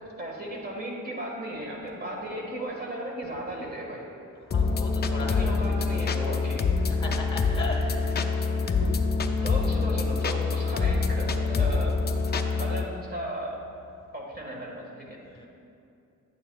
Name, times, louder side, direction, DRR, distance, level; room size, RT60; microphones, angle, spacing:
voice 1, 0.2-4.0 5.2-6.7 8.7-8.9 9.4-12.0 12.6-13.6 14.1-15.2, right 1 dB, 30° right, -2 dB, 1.7 m, -35 dB
sound 1, 4.5-12.8, left 4 dB, 30° left, 0.5 m, -25 dB
voice 2, 4.5-5.5 6.9-8.2 10.9-11.1 15.2-15.5, left 1 dB, 15° left, 0 dB, 1.4 m, -37 dB
11.5 x 8.7 x 2.4 m, 2.7 s
cardioid pair, 115°, 32 cm